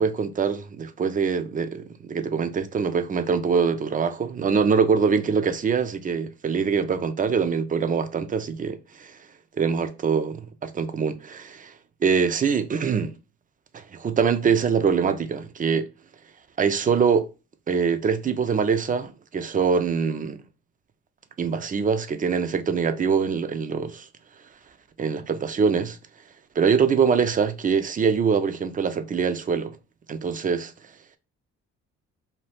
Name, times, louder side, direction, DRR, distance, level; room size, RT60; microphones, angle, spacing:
voice 1, 0.0-9.2 9.5-11.7 12.0-13.1 13.7-15.9 16.6-17.3 17.7-20.4 21.4-24.1 25.0-26.0 26.6-29.8 30.1-30.7, right 6 dB, 30° right, 0.4 m, -24 dB
2.7 x 2.3 x 3.2 m
cardioid pair, 90°, 30 cm